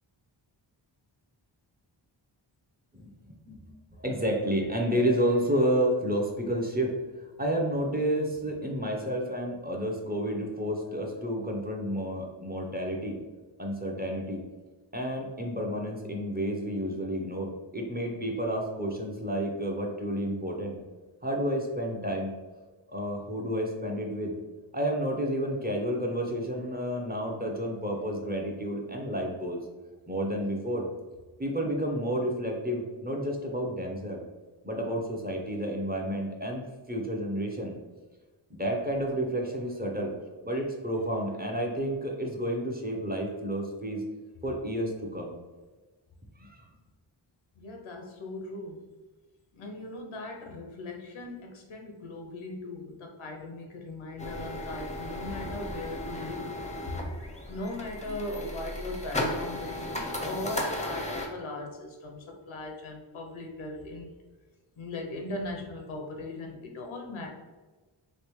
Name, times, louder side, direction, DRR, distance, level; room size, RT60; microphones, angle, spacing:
voice 1, 2.9-3.6 3.9-6.9 7.4-13.2 13.6-14.4 14.9-20.8 21.2-22.3 22.9-24.4 24.7-29.6 30.1-30.9 31.4-34.2 34.6-37.8 38.5-40.1 40.4-44.0 44.4-45.4 46.4-46.6, equal, 20° right, -1 dB, 0.7 m, -30 dB
voice 2, 47.6-48.8 49.5-57.1 57.5-64.1 64.8-67.3, left 2 dB, 90° left, 2 dB, 0.7 m, -39 dB
sound 1, 54.2-61.3, left 1 dB, 15° left, 0.6 m, -35 dB
3.3 x 2.7 x 3.1 m, 1.2 s
wide cardioid pair, 60°, 47 cm